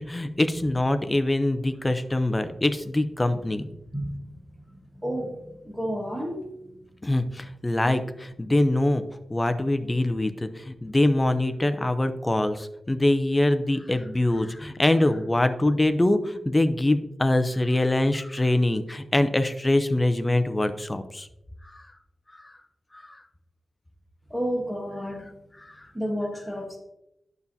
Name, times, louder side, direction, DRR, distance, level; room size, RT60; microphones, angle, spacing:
voice 1, 0.0-3.7 7.0-9.0 9.3-21.3 21.7-21.8 22.4-22.5 22.9-23.2 25.6-25.9, left 1 dB, 15° left, 10 dB, 0.5 m, -24 dB
voice 2, 3.9-6.5 24.3-25.3 25.9-26.8, equal, 5° right, 0 dB, 1.2 m, -32 dB
9.4 x 7.0 x 2.7 m, 0.84 s
wide cardioid pair, 165°, 0 cm